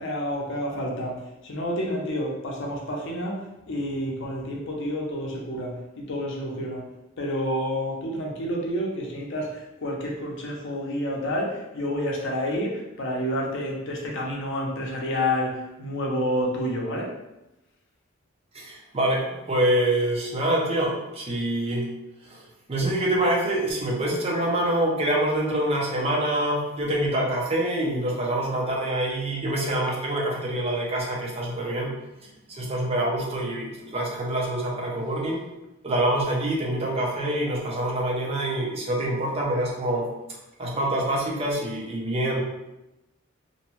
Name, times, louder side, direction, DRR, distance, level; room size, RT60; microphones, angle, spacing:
voice 1, 0.0-6.9 7.2-17.1, equal, 60° left, -2 dB, 0.6 m, -29 dB
voice 2, 18.5-21.9 22.3-22.4 22.7-31.9 32.2-35.4 35.8-40.1 40.6-42.4, right 1 dB, 30° right, -3 dB, 0.5 m, -26 dB
2.6 x 2.2 x 3.0 m, 0.93 s
head